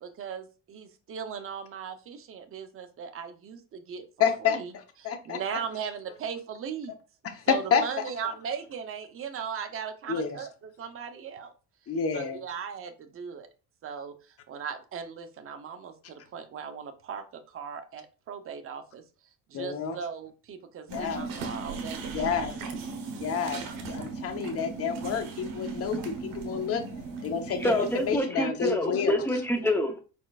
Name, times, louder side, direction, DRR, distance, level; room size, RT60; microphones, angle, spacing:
voice 1, 0.0-4.0 4.5-4.7 5.3-6.9 7.5-10.5 10.8-11.5 12.1-13.5 13.8-14.1 14.5-15.9 16.3-17.2 17.5-19.0 19.5-22.3, right 7 dB, 40° right, 8 dB, 0.7 m, -38 dB
voice 2, 4.2-5.4 7.2-7.4 7.7-8.3 10.1-10.5 11.9-12.4 19.5-20.0 20.9-21.2 22.1-22.5 23.2-23.6 23.9-26.8 27.2-29.1, left 7 dB, 45° left, 6 dB, 0.9 m, -29 dB
sound 1, 20.9-28.2, right 4 dB, 80° right, 1.0 m, -37 dB
voice 3, 27.6-30.0, left 1 dB, 5° left, 4 dB, 0.7 m, -27 dB
4.4 x 4.3 x 2.4 m, 0.34 s
cardioid pair, 135°, 33 cm